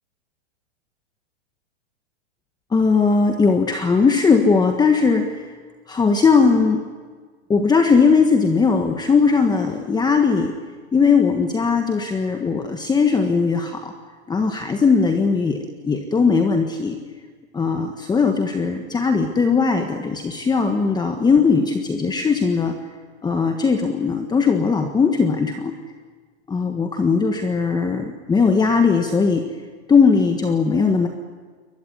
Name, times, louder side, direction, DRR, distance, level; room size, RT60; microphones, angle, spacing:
voice 1, 2.7-5.5 5.9-6.8 7.5-10.5 10.9-13.9 14.3-17.0 17.5-22.7 23.2-25.7 26.5-29.4 29.9-31.1, left 5 dB, 10° left, 5 dB, 1.4 m, -19 dB
22.0 x 20.5 x 9.5 m, 1.5 s
hypercardioid pair, 135°, 34 cm